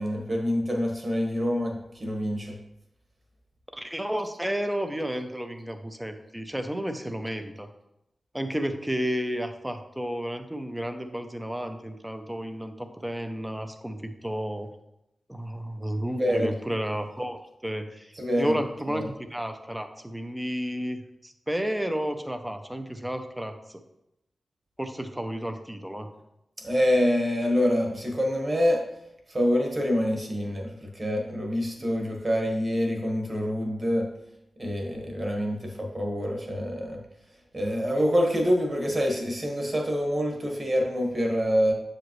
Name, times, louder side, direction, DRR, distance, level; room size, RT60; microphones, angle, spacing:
voice 1, 0.0-2.6 16.2-16.5 18.2-18.6 18.9-19.0 26.6-28.8 29.3-34.1 34.6-37.0 37.5-41.7, equal, 35° right, 1 dB, 1.4 m, -26 dB
voice 2, 3.7-7.7 8.3-14.7 15.3-23.8 24.8-26.1, equal, 5° right, 8 dB, 0.6 m, -32 dB
7.1 x 5.0 x 3.1 m, 0.87 s
wide cardioid pair, 85°, 0 cm